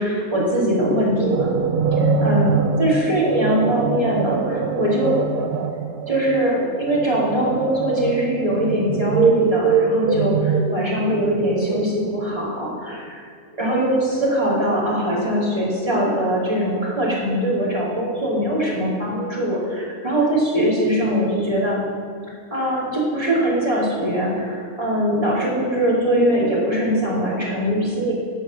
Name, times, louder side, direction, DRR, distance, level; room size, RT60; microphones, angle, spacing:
voice 1, 0.0-1.5 2.2-2.5 2.8-5.2 6.1-13.2 13.6-21.8 22.5-28.1, equal, 20° right, -7 dB, 3.0 m, -21 dB
sound 1, 0.9-12.2, right 5 dB, 75° right, 1.2 m, -23 dB
14.5 x 5.2 x 6.1 m, 2.3 s
omnidirectional pair, 1.7 m